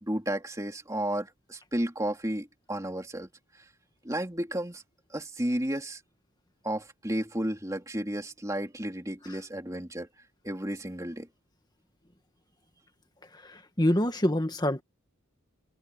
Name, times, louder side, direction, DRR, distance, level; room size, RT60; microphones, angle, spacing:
voice 1, 0.0-3.3 4.0-4.8 5.1-6.0 6.6-10.1 10.4-11.3, right 1 dB, 15° right, 2.9 m, -32 dB
voice 2, 13.8-14.8, left 1 dB, 20° left, 1.8 m, -25 dB
open air
head